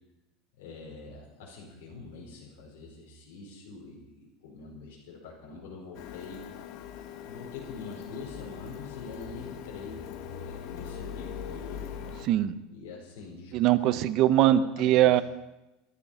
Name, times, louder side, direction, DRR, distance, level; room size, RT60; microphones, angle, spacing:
voice 1, 0.6-6.4 7.3-10.0 10.3-12.0 12.7-13.7 14.2-15.1, left 4 dB, 85° left, -4 dB, 4.7 m, -45 dB
Printer, 5.9-12.3, left 8 dB, 55° left, 1.4 m, -41 dB
voice 2, 13.5-15.2, right 12 dB, 50° right, 14 dB, 0.8 m, -22 dB
15.0 x 13.5 x 5.6 m, 0.99 s
supercardioid pair, 145°, 0 cm